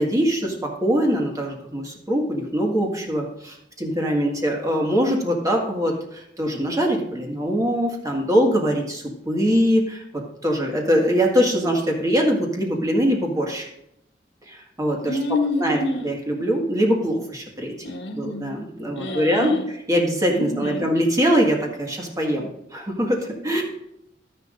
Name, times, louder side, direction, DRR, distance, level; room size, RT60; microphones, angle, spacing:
voice 1, 0.0-13.7 14.5-15.2 15.6-17.7 18.1-19.6 19.9-23.6, equal, 20° right, 0 dB, 1.7 m, -22 dB
voice 2, 15.0-16.2 17.8-18.6 18.9-19.7 20.3-20.9, left 2 dB, 80° left, -1 dB, 1.4 m, -27 dB
12.5 x 10.5 x 2.5 m, 0.80 s
head